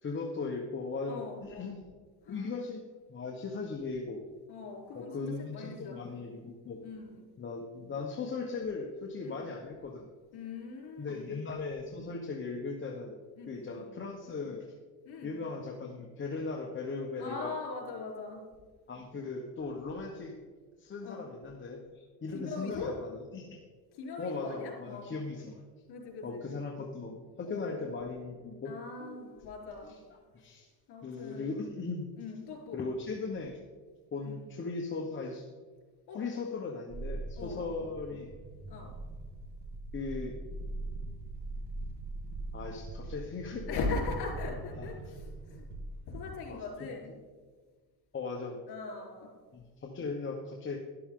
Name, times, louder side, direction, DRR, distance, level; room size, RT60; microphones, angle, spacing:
voice 1, 0.0-1.8 2.3-2.8 3.1-4.2 4.9-6.8 7.4-10.1 11.0-13.2 13.5-14.7 15.2-17.5 18.9-20.3 20.8-23.6 24.2-25.6 26.2-29.3 29.8-30.0 30.3-30.7 31.0-32.1 32.7-33.6 34.1-35.4 36.1-38.3 39.9-40.3 42.5-43.8 44.7-44.9 46.5-46.9 48.1-48.6 49.5-50.8, left 4 dB, 30° left, 0 dB, 1.1 m, -38 dB
voice 2, 1.0-1.7 2.2-2.5 4.5-6.2 6.8-7.2 9.2-9.4 10.3-11.4 13.4-13.8 15.1-15.4 17.2-18.4 21.0-21.2 22.3-22.9 23.9-25.2 25.9-26.5 27.4-27.9 28.6-29.9 30.9-31.5 32.2-32.8 34.2-34.4 36.1-36.2 37.4-37.7 38.7-38.9 43.7-45.7 46.1-47.1 48.7-49.3, left 3 dB, 65° left, -1 dB, 4.0 m, -40 dB
sound 1, 36.9-46.3, right 2 dB, 85° right, 1.6 m, -41 dB
12.5 x 11.5 x 3.8 m, 1.5 s
cardioid pair, 125°, 41 cm